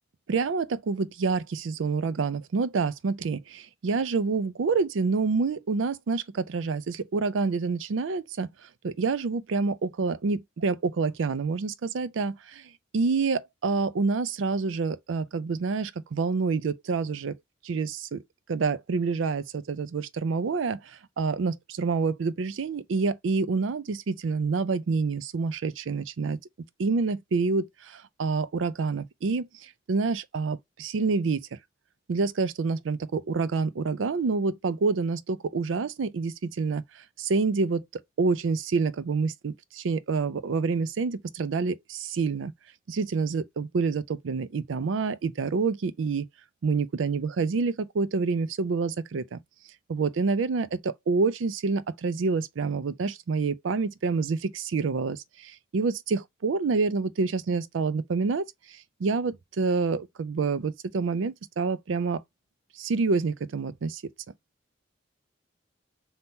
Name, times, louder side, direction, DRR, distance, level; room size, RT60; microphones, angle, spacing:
voice 1, 0.3-8.5 8.8-17.3 17.6-18.2 18.5-26.4 26.8-31.5 32.1-36.8 37.2-37.8 38.2-42.5 42.9-46.3 46.6-49.4 49.9-62.2 62.8-64.0, right 4 dB, 90° right, 0.4 m, -27 dB
3.6 x 2.8 x 2.7 m
head